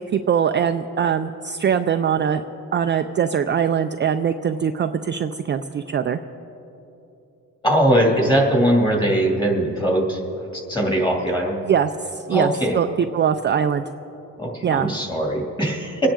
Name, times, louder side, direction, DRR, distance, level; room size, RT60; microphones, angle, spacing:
voice 1, 0.0-2.4 2.7-6.2 11.6-13.8 14.6-14.9, right 8 dB, 35° right, 7 dB, 0.4 m, -22 dB
voice 2, 7.6-10.2 10.5-11.6 12.3-12.8 14.4-16.1, right 1 dB, 15° left, -1 dB, 2.6 m, -20 dB
26.5 x 9.9 x 3.8 m, 3.0 s
cardioid pair, 125°, 34 cm